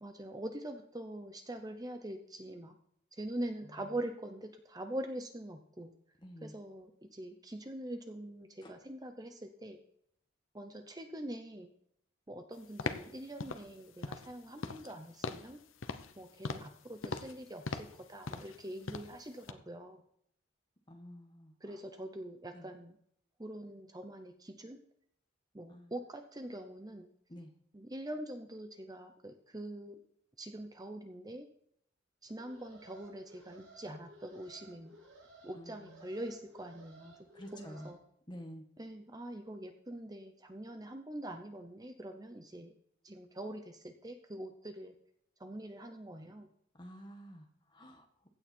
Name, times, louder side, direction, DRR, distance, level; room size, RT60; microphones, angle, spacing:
voice 1, 0.0-2.8 3.1-5.9 6.4-9.8 10.5-11.7 12.3-15.6 16.2-20.0 21.6-23.0 23.4-24.8 25.5-27.1 27.7-30.0 30.4-31.5 32.2-35.0 35.4-37.3 37.5-38.0 38.8-42.7 43.0-45.0 45.4-46.5, right 1 dB, 20° right, 6 dB, 0.8 m, -44 dB
voice 2, 6.2-6.5 8.6-8.8 20.9-21.8 22.5-22.7 25.7-25.9 27.3-27.5 35.5-36.0 37.3-37.9 38.3-38.6 46.8-48.1, equal, 20° left, 4 dB, 1.6 m, -50 dB
sound 1, 12.8-13.1 13.4-13.7 14.0-14.3 14.6-14.9 15.2-15.5 15.8-16.1 16.4-16.7 17.0-17.3 17.7-18.0 18.3-18.6 18.9-19.2 19.5-19.6, left 3 dB, 80° left, 0.9 m, -39 dB
Alarm, 32.3-37.9, right 1 dB, 75° right, 5.7 m, -58 dB
16.0 x 8.9 x 4.5 m, 0.70 s
head